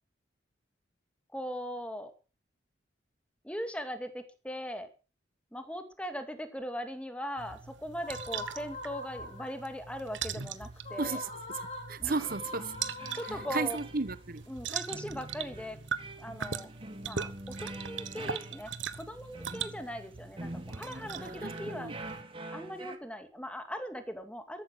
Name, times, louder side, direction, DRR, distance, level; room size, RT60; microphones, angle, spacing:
voice 1, 1.3-2.1 3.4-4.9 5.5-11.2 12.0-12.3 13.1-13.8 14.5-15.8 16.2-16.7 17.0-18.7 19.0-21.9 22.5-24.6, equal, 5° left, 2.3 m, -39 dB
sound 1, 7.4-22.2, right 7 dB, 90° right, 1.2 m, -41 dB
sound 2, 8.0-9.7 10.8-14.2, left 2 dB, 35° left, 5.8 m, -43 dB
voice 2, 11.9-12.7 13.5-14.4 21.2-21.9, right 4 dB, 50° right, 1.0 m, -33 dB
sound 3, 12.2-23.0, right 2 dB, 30° right, 2.3 m, -45 dB
14.0 x 11.5 x 6.0 m
head